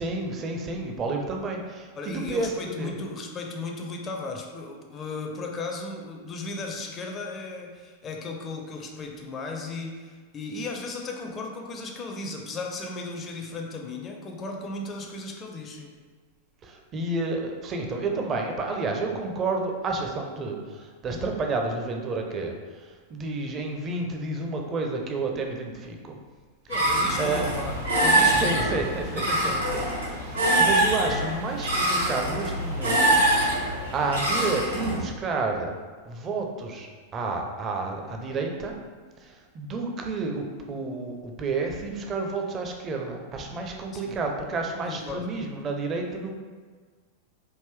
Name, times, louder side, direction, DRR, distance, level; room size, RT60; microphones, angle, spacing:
voice 1, 0.0-2.9 16.6-26.2 27.2-27.5 28.3-33.2 33.6-35.7 36.1-38.8 39.2-46.4, right 3 dB, 30° right, 2 dB, 0.5 m, -30 dB
voice 2, 2.0-15.9 26.7-28.8 29.3-29.6 43.9-44.2 44.8-45.3, left 3 dB, 25° left, 2 dB, 0.4 m, -36 dB
sound 1, 26.7-35.0, right 1 dB, 85° right, 1.4 m, -24 dB
3.5 x 2.6 x 3.3 m, 1.5 s
figure-of-eight pair, 90°, 0 cm